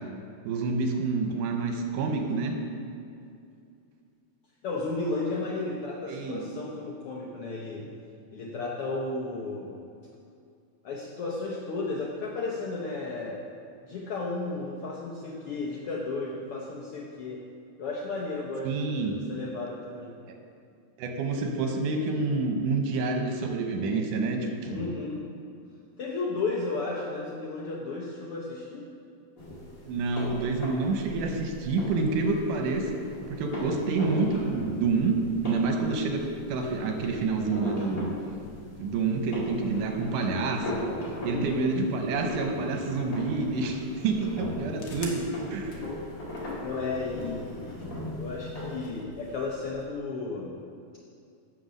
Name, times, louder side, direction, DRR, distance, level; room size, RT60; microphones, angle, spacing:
voice 1, 0.5-2.6 6.1-6.4 18.6-19.1 20.3-20.4 21.0-24.9 29.8-32.9 33.3-35.1 35.4-38.1 38.8-40.8 41.2-45.3 45.5-45.8, right 3 dB, 85° right, 3 dB, 2.5 m, -28 dB
voice 2, 4.6-7.9 8.3-9.8 10.8-13.4 13.8-17.4 17.8-20.2 24.7-25.2 26.0-28.9 41.3-41.7 46.3-47.8 48.2-50.5, left 3 dB, 75° left, -4 dB, 1.3 m, -34 dB
sound 1, 29.4-48.8, left 1 dB, 35° left, 2.5 m, -39 dB
sound 2, 44.7-49.9, left 3 dB, 55° left, 1.6 m, -47 dB
7.9 x 6.8 x 6.3 m, 2.4 s
omnidirectional pair, 3.6 m